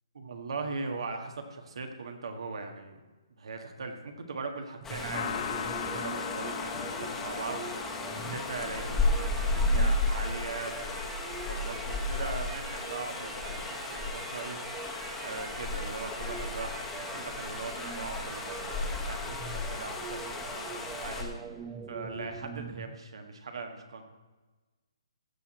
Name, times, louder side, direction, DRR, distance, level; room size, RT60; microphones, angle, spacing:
voice 1, 0.1-3.0 3.4-7.6 8.3-11.0 11.4-14.6 15.2-21.3 21.9-24.0, right 4 dB, 70° right, 4 dB, 1.6 m, -40 dB
sound 1, 4.8-21.2, left 2 dB, 10° left, 1.2 m, -33 dB
sound 2, 4.8-23.0, right 6 dB, 15° right, 0.6 m, -45 dB
sound 3, 5.1-10.4, left 8 dB, 45° left, 0.7 m, -39 dB
15.5 x 6.1 x 4.3 m, 1.2 s
hypercardioid pair, 155°, 3 cm